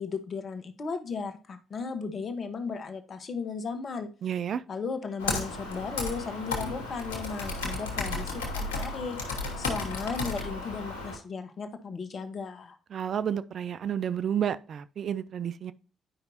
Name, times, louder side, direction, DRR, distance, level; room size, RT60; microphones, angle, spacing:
voice 1, 0.0-4.1 4.7-9.2 9.6-12.8, left 5 dB, 50° left, 1.1 m, -35 dB
voice 2, 4.2-4.6 12.9-15.7, right 9 dB, 60° right, 0.4 m, -31 dB
Computer keyboard, 5.2-11.2, left 3 dB, 90° left, 1.3 m, -33 dB
10.0 x 5.3 x 2.9 m
hypercardioid pair, 45°, 0 cm